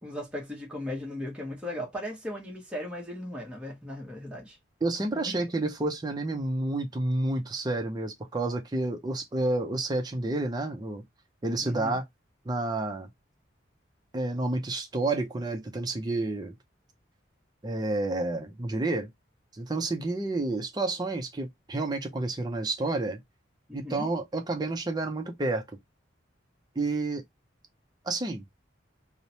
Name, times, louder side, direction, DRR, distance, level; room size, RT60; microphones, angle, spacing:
voice 1, 0.0-4.6 5.1-5.3 11.6-12.0 23.7-24.1, left 1 dB, 5° right, 0.8 m, -37 dB
voice 2, 4.8-11.0 11.4-12.0 12.5-13.1 14.1-16.6 17.6-19.1 19.5-23.2 23.7-25.6 26.8-27.2 28.1-28.4, right 2 dB, 20° right, 0.5 m, -30 dB
3.1 x 2.0 x 2.6 m
head